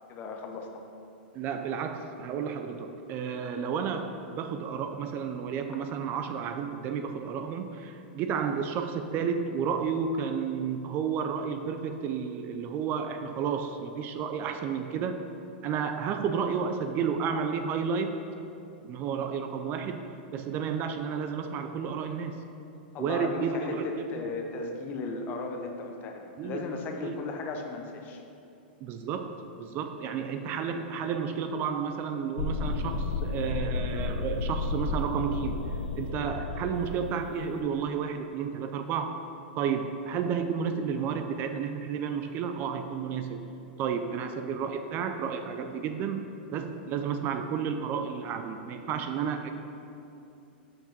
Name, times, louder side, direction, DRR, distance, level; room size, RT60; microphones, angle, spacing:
voice 1, 0.1-0.8 22.9-28.2, left 3 dB, 35° left, 3 dB, 0.9 m, -36 dB
voice 2, 1.3-15.3 15.6-18.2 18.8-20.1 20.3-22.4 23.0-24.3 26.4-26.7 27.0-27.2 28.8-35.6 36.0-39.2 39.6-43.4 43.8-49.5, right 6 dB, 35° right, 7 dB, 0.5 m, -32 dB
sound 1, 32.4-37.5, left 3 dB, 80° left, 0.5 m, -32 dB
6.0 x 5.1 x 5.2 m, 2.7 s
hypercardioid pair, 120°, 6 cm